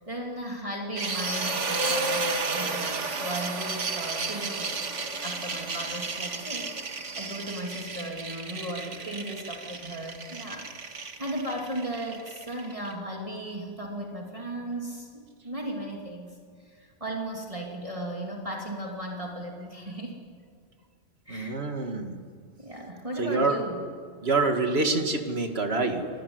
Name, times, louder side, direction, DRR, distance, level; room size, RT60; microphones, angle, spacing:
voice 1, 0.1-10.7 11.2-16.4 16.7-20.1 21.3-21.6 22.6-23.9, right 1 dB, 25° right, -1 dB, 2.8 m, -36 dB
sound 1, 1.0-12.9, right 3 dB, 70° right, 2.0 m, -32 dB
voice 2, 21.3-22.2 23.2-23.6 24.2-26.1, right 3 dB, 55° right, 5 dB, 2.4 m, -26 dB
26.0 x 19.0 x 9.6 m, 2.2 s
omnidirectional pair, 1.3 m